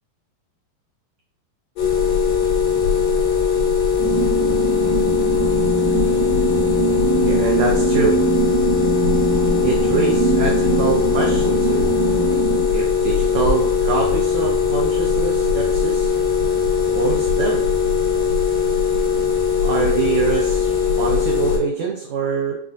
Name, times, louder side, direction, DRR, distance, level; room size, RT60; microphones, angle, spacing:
sound 1, 1.8-21.6, left 6 dB, 65° left, 1.7 m, -19 dB
sound 2, 4.0-12.6, right 6 dB, 70° right, 1.9 m, -23 dB
voice 1, 7.2-8.2 9.6-11.9 12.7-16.1 16.9-17.7 19.6-20.7 21.0-22.6, right 5 dB, 90° right, -1 dB, 1.5 m, -24 dB
7.1 x 2.5 x 2.4 m, 0.71 s
omnidirectional pair, 3.9 m